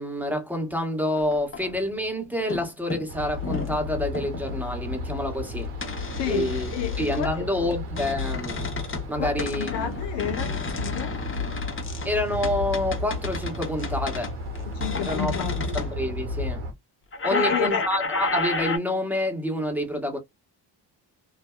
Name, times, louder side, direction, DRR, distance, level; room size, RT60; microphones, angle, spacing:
voice 1, 0.0-5.7 6.0-6.7 7.0-8.7 9.1-9.7 12.0-14.4 15.0-16.6 17.2-20.2, left 1 dB, 5° right, 1.2 m, -28 dB
sound 1, 1.1-2.1 2.4-2.7 2.9-3.8 4.1-4.6 5.8-7.3 7.7-9.1 9.4-15.9 17.1-18.8, left 3 dB, 25° left, 0.8 m, -32 dB
sound 2, 3.1-16.7, left 2 dB, 85° right, 1.1 m, -33 dB
voice 2, 6.1-7.5 9.2-11.2 14.7-15.8 17.3-17.8, left 11 dB, 60° left, 0.5 m, -31 dB
2.6 x 2.3 x 2.2 m
supercardioid pair, 55°, 48 cm